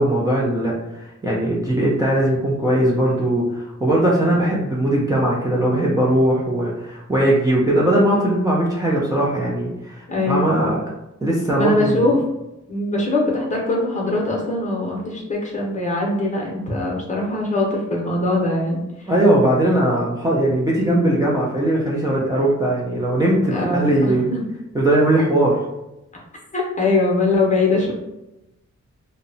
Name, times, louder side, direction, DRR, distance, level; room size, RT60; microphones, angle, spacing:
voice 1, 0.0-10.8 11.2-12.1 19.1-24.3 24.7-25.6, right 1 dB, 10° right, -5 dB, 0.4 m, -19 dB
voice 2, 10.1-10.6 11.5-12.2 12.7-19.1 23.5-24.5 26.5-27.9, left 2 dB, 25° left, -2 dB, 0.7 m, -22 dB
2.7 x 2.0 x 2.6 m, 0.94 s
wide cardioid pair, 120°, 30 cm